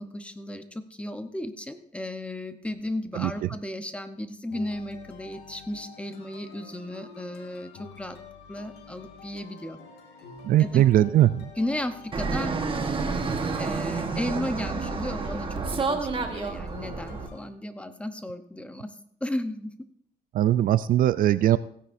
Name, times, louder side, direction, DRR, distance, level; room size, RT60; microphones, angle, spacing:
voice 1, 0.0-8.2 8.5-9.8 10.6-10.8 11.6-12.6 13.5-19.0 19.2-19.7, left 1 dB, 5° left, 9 dB, 0.9 m, -34 dB
sound 1, 4.5-17.5, left 5 dB, 75° left, 1.9 m, -47 dB
voice 2, 10.4-11.5 20.3-21.6, right 12 dB, 55° right, 15 dB, 0.4 m, -20 dB
Fixed-wing aircraft airplane, 12.1-17.3, right 4 dB, 30° right, 1.3 m, -29 dB
16.0 x 9.8 x 2.6 m, 0.68 s
cardioid pair, 110°, 17 cm